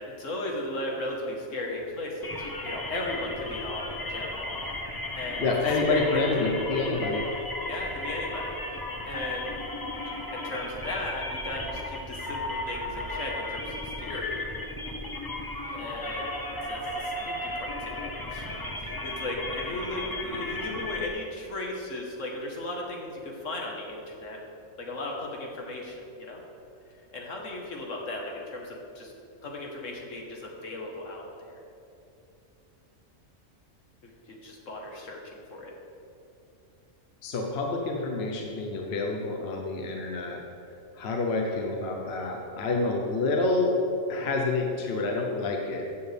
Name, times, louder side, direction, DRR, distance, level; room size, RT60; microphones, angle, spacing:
voice 1, 0.0-4.5 5.2-5.5 5.8-6.5 7.6-8.6 9.1-9.6 10.3-14.4 15.4-16.3 16.7-24.4 24.8-26.4 27.1-29.1 29.4-31.5 34.0-35.7, left 1 dB, 75° left, -1 dB, 1.7 m, -36 dB
sound 1, 2.2-21.1, left 1 dB, 20° left, 0.7 m, -35 dB
voice 2, 5.4-7.3 37.2-40.4 40.9-43.8 44.1-45.9, left 3 dB, 55° left, 1 dB, 1.1 m, -28 dB
14.5 x 7.1 x 3.4 m, 2.7 s
omnidirectional pair, 1.3 m